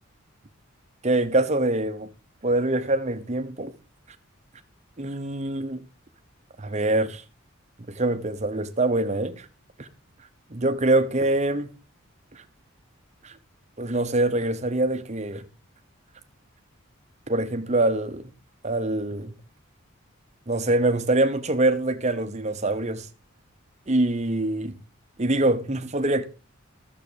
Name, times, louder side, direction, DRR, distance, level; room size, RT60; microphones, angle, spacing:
voice 1, 1.0-2.1 2.4-3.7 5.0-5.8 6.6-7.2 7.9-9.5 9.8-9.9 10.5-11.7 12.3-12.4 13.2-13.3 13.8-15.5 17.3-18.3 18.6-19.3 20.5-23.1 23.9-24.8 25.2-26.2, right 2 dB, 35° right, 0.9 m, -24 dB
12.5 x 7.3 x 5.1 m
head